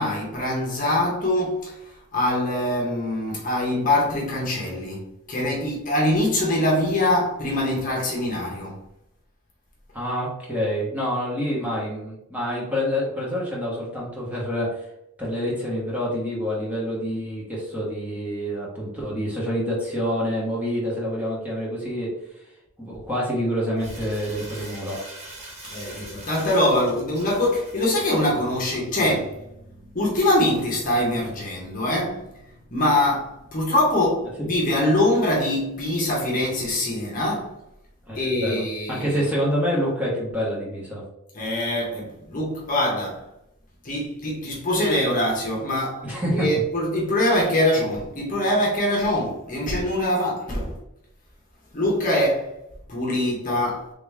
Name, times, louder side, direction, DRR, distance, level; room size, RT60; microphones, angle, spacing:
voice 1, 0.0-8.8 25.6-32.2 32.7-37.5 38.1-39.2 41.3-43.3 43.8-50.8 51.7-52.5 52.9-53.9, left 1 dB, 35° left, 0.9 m, -23 dB
voice 2, 9.9-14.9 15.2-22.1 22.8-25.0 34.4-34.5 38.1-41.0 46.0-46.5, equal, 5° right, 1.0 m, -27 dB
Crumpling crinkling, 23.8-28.2, right 1 dB, 30° right, 0.8 m, -42 dB
3.5 x 2.9 x 3.4 m
head